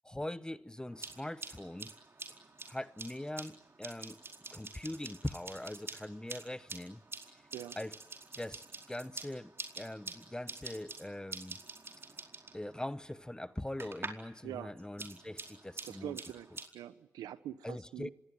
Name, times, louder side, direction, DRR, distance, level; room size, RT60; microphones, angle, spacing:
voice 1, 0.0-1.9 2.7-4.2 4.5-7.0 7.3-7.4 7.8-8.0 8.4-11.6 12.5-16.2 16.5-16.6 17.6-18.1, left 1 dB, 10° left, 1.0 m, -42 dB
sound 1, 0.9-14.4 14.6-16.7, right 3 dB, 40° right, 4.6 m, -47 dB
voice 2, 15.8-16.5 16.7-18.1, right 11 dB, 90° right, 1.2 m, -43 dB
25.5 x 19.0 x 9.5 m
supercardioid pair, 50°, 6 cm